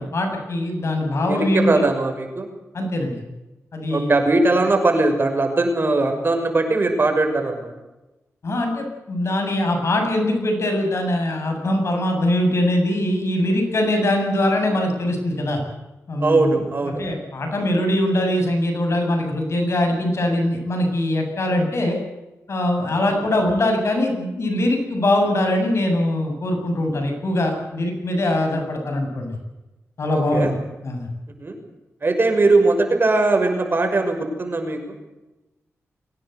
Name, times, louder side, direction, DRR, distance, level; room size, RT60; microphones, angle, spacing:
voice 1, 0.0-1.7 2.7-3.2 3.7-4.1 8.4-15.6 16.1-16.6 16.8-22.0 22.5-29.4 30.0-30.6 30.8-31.1, left 1 dB, 60° left, 4 dB, 7.9 m, -22 dB
voice 2, 1.2-2.5 3.9-7.7 16.2-17.0 23.1-23.2 30.1-30.5 31.4-31.6 32.0-34.8, right 2 dB, 45° right, 5 dB, 6.3 m, -20 dB
23.5 x 18.0 x 8.2 m, 1.0 s
cardioid pair, 75°, 5 cm